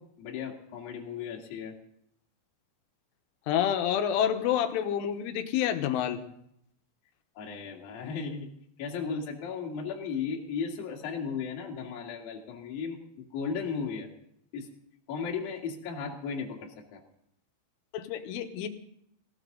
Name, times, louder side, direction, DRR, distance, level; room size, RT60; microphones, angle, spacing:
voice 1, 0.0-1.8 7.4-8.5 8.8-14.1 14.5-14.7 15.1-17.0, left 6 dB, 55° left, -1 dB, 3.5 m, -35 dB
voice 2, 3.5-6.2 17.9-18.7, left 9 dB, 85° left, 7 dB, 3.6 m, -28 dB
19.0 x 17.5 x 3.9 m, 0.72 s
omnidirectional pair, 5.6 m